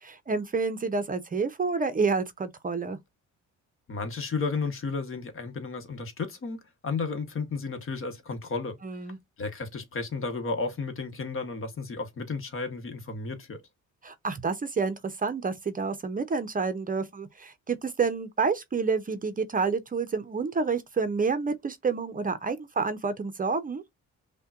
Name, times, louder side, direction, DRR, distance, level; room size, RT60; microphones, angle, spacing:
voice 1, 0.0-3.0 8.8-9.2 14.0-23.8, right 4 dB, 30° right, 0.6 m, -29 dB
voice 2, 3.9-8.8 9.4-13.6, left 4 dB, 45° left, 1.1 m, -33 dB
5.4 x 2.2 x 2.4 m
cardioid pair, 90°, 30 cm